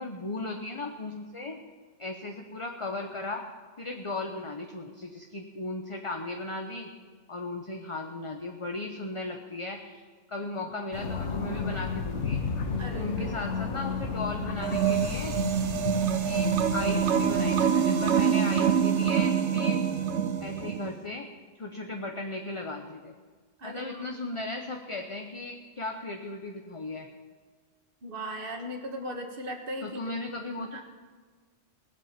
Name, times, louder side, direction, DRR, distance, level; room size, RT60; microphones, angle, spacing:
voice 1, 0.0-1.6 2.0-3.4 3.8-6.9 7.3-10.0 10.3-12.4 12.7-15.3 16.2-19.8 20.4-21.3 21.6-23.1 23.6-27.1 29.8-30.8, left 2 dB, 30° left, 3 dB, 1.0 m, -36 dB
airplane prop distant take off +truck pass overlap, 10.9-17.6, left 5 dB, 80° left, 1.5 m, -33 dB
voice 2, 12.8-13.3 23.6-24.1 28.0-30.2 30.4-30.8, equal, 50° right, 3 dB, 1.9 m, -38 dB
sound 1, 14.6-20.9, right 7 dB, 85° right, 1.1 m, -25 dB
19.5 x 8.2 x 7.4 m, 1.5 s
omnidirectional pair, 1.2 m